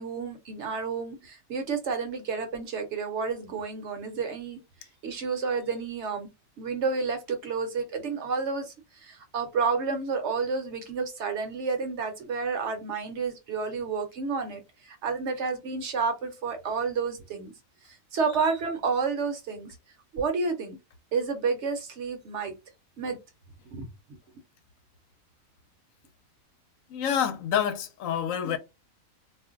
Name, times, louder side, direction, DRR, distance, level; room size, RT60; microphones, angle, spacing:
voice 1, 0.0-4.6 5.0-6.3 6.6-17.5 17.8-19.8 20.1-20.8 21.1-22.5 23.0-23.2 23.7-23.9, right 5 dB, 60° right, 0.9 m, -30 dB
voice 2, 26.9-28.6, left 9 dB, 75° left, 1.0 m, -27 dB
2.4 x 2.1 x 3.7 m
omnidirectional pair, 1.4 m